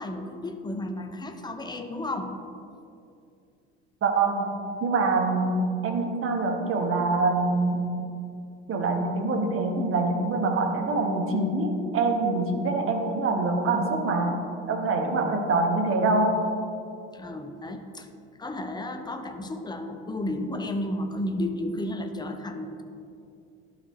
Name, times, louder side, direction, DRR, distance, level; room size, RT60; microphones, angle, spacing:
voice 1, 0.0-2.3 17.1-18.1 18.4-22.8, left 1 dB, 15° left, 7 dB, 0.7 m, -32 dB
voice 2, 4.0-4.5 4.8-7.8 8.7-14.4 14.7-16.4, right 3 dB, 40° right, 3 dB, 1.2 m, -25 dB
12.0 x 4.2 x 3.1 m, 2.5 s
figure-of-eight pair, 60°, 33 cm